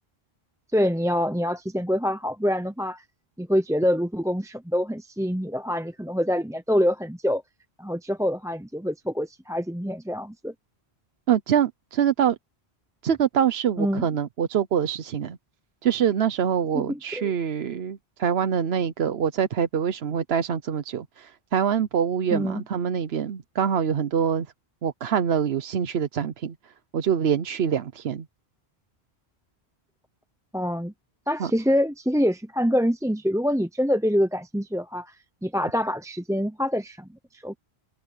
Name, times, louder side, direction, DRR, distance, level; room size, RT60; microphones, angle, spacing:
voice 1, 0.7-3.0 3.4-7.4 7.8-10.5 13.8-14.0 16.7-17.3 22.3-22.6 30.5-30.9 31.3-35.1 35.4-37.5, equal, 5° right, 0.7 m, -25 dB
voice 2, 11.3-12.4 13.0-15.4 15.8-24.5 24.8-26.5 26.9-28.2 31.4-31.5, right 8 dB, 70° right, 1.0 m, -25 dB
open air
omnidirectional pair, 1.1 m